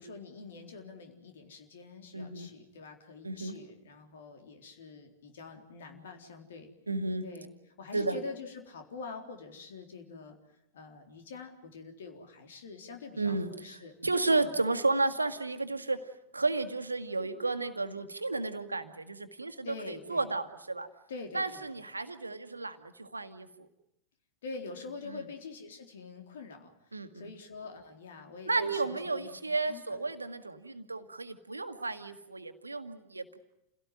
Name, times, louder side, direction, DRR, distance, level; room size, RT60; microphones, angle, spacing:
voice 1, 0.0-6.7 7.2-7.5 7.8-10.4 10.7-13.9 14.3-14.5 19.6-20.3 21.1-21.7 24.4-29.4 29.7-29.8, left 4 dB, 60° left, 5 dB, 3.9 m, -45 dB
voice 2, 2.1-2.5 3.2-3.6 6.9-7.2 7.9-8.1 13.2-16.0 16.3-20.9 21.3-23.7 25.1-25.2 26.9-27.1 28.4-33.4, right 3 dB, 80° right, 10 dB, 1.7 m, -32 dB
28.5 x 17.0 x 9.3 m, 0.85 s
figure-of-eight pair, 90°, 0 cm